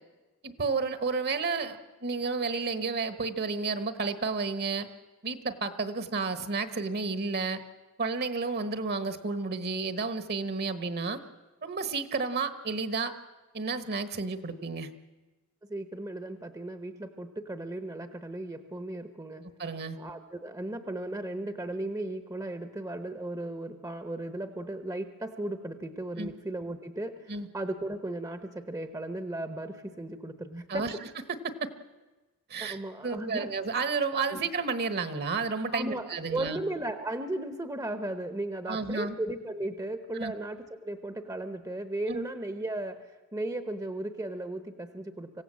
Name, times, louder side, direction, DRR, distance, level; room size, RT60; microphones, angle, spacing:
voice 1, 0.4-4.9 5.2-7.6 8.0-11.2 11.6-13.1 13.5-14.9 19.6-20.0 26.2-26.3 27.3-27.5 30.7-30.9 31.4-31.7 32.5-32.8 33.0-36.6 38.7-39.1 40.1-40.3 42.1-42.2, right 4 dB, 45° right, 11 dB, 1.3 m, -31 dB
voice 2, 15.7-19.5 20.0-30.9 32.6-33.5 34.3-34.4 35.7-45.4, right 1 dB, 15° right, 9 dB, 0.9 m, -36 dB
25.5 x 16.0 x 7.6 m, 1.2 s
head